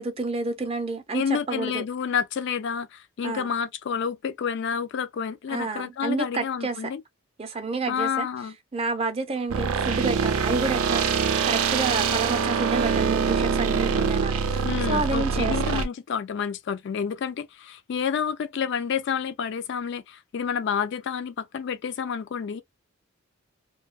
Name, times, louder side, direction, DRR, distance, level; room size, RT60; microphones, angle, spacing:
voice 1, 0.0-1.2 1.5-1.8 3.2-3.5 5.5-6.9 7.4-8.3 8.7-11.1 11.4-15.9, right 3 dB, 25° right, 0.5 m, -29 dB
voice 2, 1.1-7.0 7.9-8.6 14.6-22.6, left 7 dB, 55° left, 0.3 m, -29 dB
sound 1, 9.5-15.9, right 6 dB, 85° right, 0.5 m, -24 dB
2.6 x 2.2 x 2.3 m
head